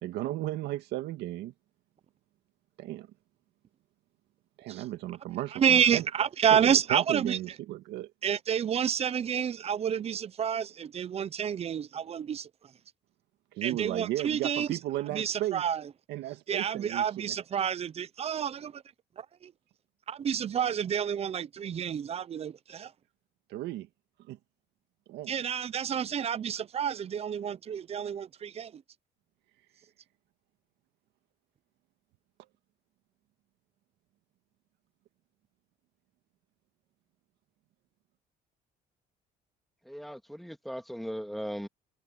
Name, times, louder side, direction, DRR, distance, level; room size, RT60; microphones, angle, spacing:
voice 1, 0.0-1.5 2.8-3.1 4.6-6.0 6.5-8.1 13.5-15.6 16.1-17.3 23.5-23.9 24.3-24.4 25.1-25.3, right 15 dB, 85° right, 2.0 m, -35 dB
voice 2, 5.5-7.4 8.2-12.5 13.6-14.8 15.1-15.8 16.5-18.8 19.2-19.5 20.1-22.9 25.3-28.8, right 8 dB, 35° right, 0.7 m, -29 dB
voice 3, 39.9-41.7, equal, ahead, 2.1 m, -38 dB
cardioid pair, 110°, 17 cm